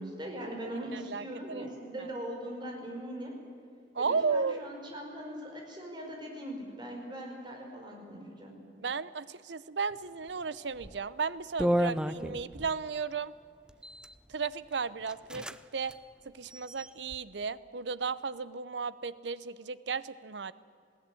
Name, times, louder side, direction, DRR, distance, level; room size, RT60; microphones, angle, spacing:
voice 1, 0.0-3.3 4.0-8.5, right 1 dB, 25° right, 1 dB, 5.0 m, -40 dB
voice 2, 0.9-1.7 2.0-2.1 3.9-4.6 8.8-13.3 14.3-15.5 15.7-15.9 16.4-20.5, right 5 dB, 80° right, 17 dB, 0.7 m, -34 dB
sound 1, 10.8-11.0 11.6-12.7 13.7-14.1 14.7-14.8 15.1-15.6 15.8-16.0 16.5-17.2, right 1 dB, 5° right, 0.5 m, -32 dB
20.5 x 16.0 x 9.9 m, 2.4 s
head